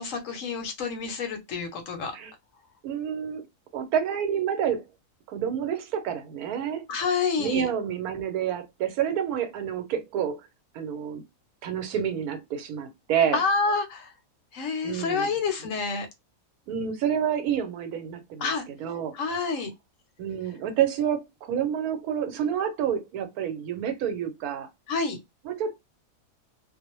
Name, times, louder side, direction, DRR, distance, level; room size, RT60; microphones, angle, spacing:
voice 1, 0.0-2.1 6.9-7.6 13.3-14.1 14.5-16.1 18.4-18.6 19.1-19.7 24.9-25.2, left 4 dB, 70° left, 0.9 m, -28 dB
voice 2, 2.8-3.4 3.7-4.8 5.3-6.9 7.4-10.5 10.7-11.2 11.6-13.4 14.8-15.3 16.7-19.3 20.2-24.7 25.4-25.8, right 8 dB, 85° right, 1.1 m, -28 dB
2.5 x 2.0 x 2.9 m
omnidirectional pair, 1.6 m